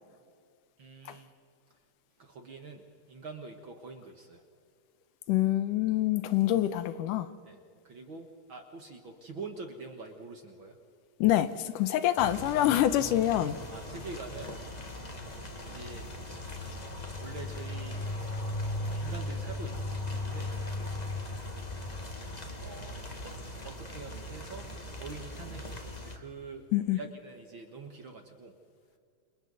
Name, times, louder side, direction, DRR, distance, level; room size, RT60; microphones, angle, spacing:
voice 1, 0.8-1.3 2.2-4.4 7.5-7.6 7.8-10.8 13.7-14.6 15.6-16.1 17.2-18.0 18.8-20.5 22.6-24.6 24.9-26.6 26.9-28.6, right 4 dB, 50° right, 1.7 m, -45 dB
voice 2, 5.3-7.3 11.2-13.6 26.7-27.0, left 13 dB, 80° left, 2.3 m, -26 dB
sound 1, 12.2-26.2, left 1 dB, 35° left, 0.6 m, -38 dB
29.0 x 27.0 x 4.1 m
omnidirectional pair, 3.8 m